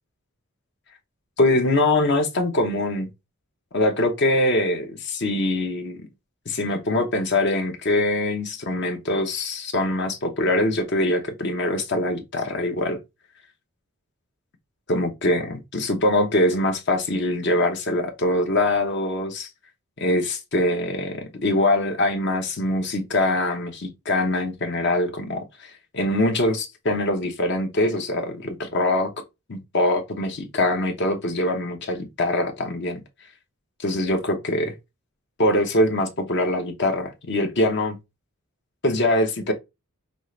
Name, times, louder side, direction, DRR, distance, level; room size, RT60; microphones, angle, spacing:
voice 1, 1.4-3.1 3.7-6.0 6.5-13.0 14.9-19.5 20.0-29.1 29.5-33.0 33.8-34.7 35.4-38.0 38.8-39.5, left 1 dB, 50° left, 0.8 m, -23 dB
5.3 x 2.5 x 3.1 m
head